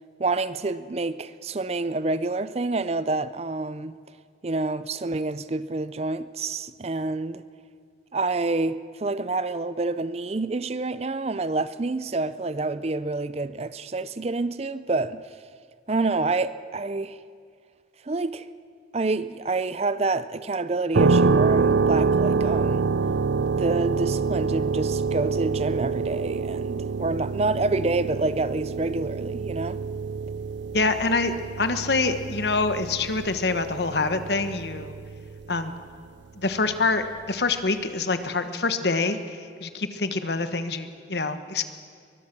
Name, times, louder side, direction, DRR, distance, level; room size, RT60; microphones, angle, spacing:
voice 1, 0.2-4.0 4.4-7.4 8.1-15.2 15.9-17.2 18.0-18.5 18.9-22.8 23.6-29.8, right 3 dB, 35° right, 0.5 m, -28 dB
sound 1, 20.9-35.6, right 4 dB, 80° right, 0.7 m, -26 dB
voice 2, 30.7-35.0 35.5-35.7 36.4-41.6, left 3 dB, 65° left, 1.2 m, -26 dB
23.0 x 21.0 x 6.0 m
head